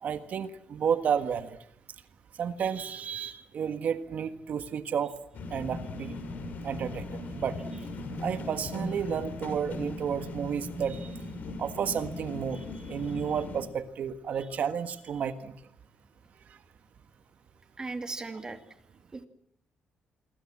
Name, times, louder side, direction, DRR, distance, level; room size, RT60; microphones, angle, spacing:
voice 1, 0.0-1.6 2.4-5.1 5.5-6.1 6.6-7.6 8.2-11.2 11.6-12.6 12.9-15.5, right 7 dB, 55° right, 10 dB, 1.6 m, -31 dB
sound 1, 5.3-13.6, left 2 dB, 65° left, 6.4 m, -38 dB
voice 2, 12.5-13.0 17.8-18.6 19.1-19.3, right 3 dB, 25° right, 8 dB, 2.4 m, -38 dB
27.5 x 23.5 x 7.5 m, 0.69 s
cardioid pair, 135°, 3 cm